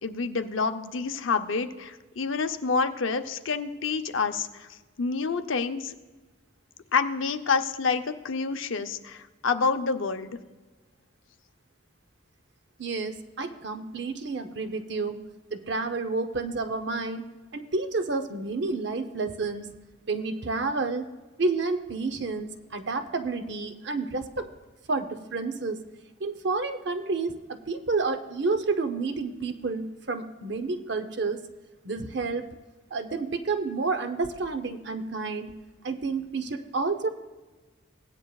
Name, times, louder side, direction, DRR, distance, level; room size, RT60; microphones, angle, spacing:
voice 1, 0.0-4.7 5.0-5.9 6.9-10.4, left 4 dB, 75° left, 8 dB, 0.7 m, -28 dB
voice 2, 12.8-15.2 15.5-17.3 17.5-19.7 20.1-21.1 21.4-24.5 24.9-25.8 26.2-31.4 31.8-32.5 32.9-35.5 35.8-37.1, right 3 dB, 55° right, 8 dB, 0.7 m, -30 dB
17.0 x 9.6 x 2.4 m, 1.3 s
head